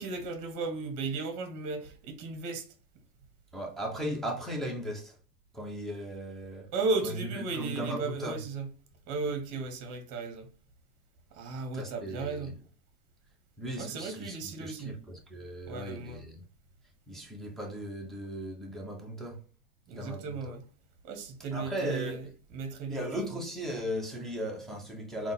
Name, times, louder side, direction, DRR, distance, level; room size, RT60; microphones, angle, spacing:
voice 1, 0.0-2.7 6.7-8.7 9.1-10.5 11.3-12.6 13.8-15.0 15.7-16.2 19.9-20.7 21.0-23.1, right 3 dB, 40° right, 1.1 m, -35 dB
voice 2, 3.5-5.2 5.5-6.7 7.0-8.4 11.7-12.5 13.6-16.4 17.1-19.5 19.9-20.5 21.5-22.2 22.9-25.3, equal, ahead, 1.1 m, -37 dB
3.8 x 2.4 x 3.9 m
hypercardioid pair, 105°, 49 cm